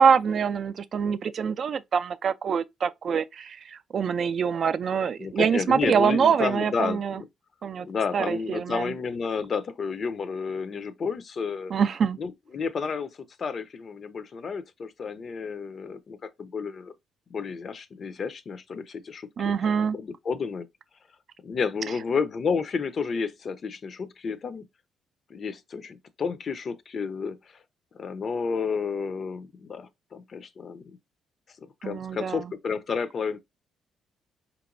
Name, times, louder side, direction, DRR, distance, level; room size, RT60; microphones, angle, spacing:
voice 1, 0.0-7.2 7.6-7.9 8.1-8.9 11.7-12.2 19.4-20.0 31.8-32.5, right 6 dB, 55° right, 0.3 m, -25 dB
voice 2, 5.2-7.3 7.8-11.7 12.2-13.1 13.4-16.9 17.3-19.5 19.9-20.7 21.4-24.6 25.3-27.6 27.9-31.0 31.8-33.4, left 5 dB, 50° left, 0.5 m, -31 dB
4.2 x 2.9 x 2.5 m
cardioid pair, 90°, 0 cm